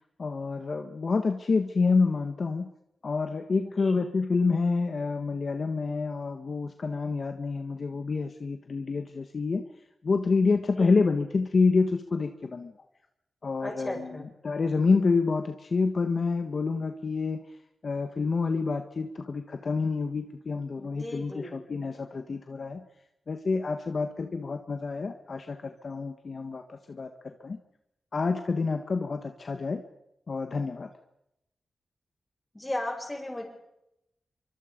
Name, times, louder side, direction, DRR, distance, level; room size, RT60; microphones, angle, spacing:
voice 1, 0.2-2.7 3.0-9.6 10.0-12.7 13.4-17.4 17.8-22.8 23.3-27.6 28.1-29.8 30.3-30.9, left 4 dB, 55° left, 6 dB, 1.5 m, -28 dB
voice 2, 3.6-4.0 10.6-11.0 13.6-14.3 20.8-21.6 32.5-33.4, left 1 dB, 15° left, 2 dB, 7.1 m, -36 dB
26.0 x 24.0 x 5.3 m, 0.83 s
wide cardioid pair, 90°, 0 cm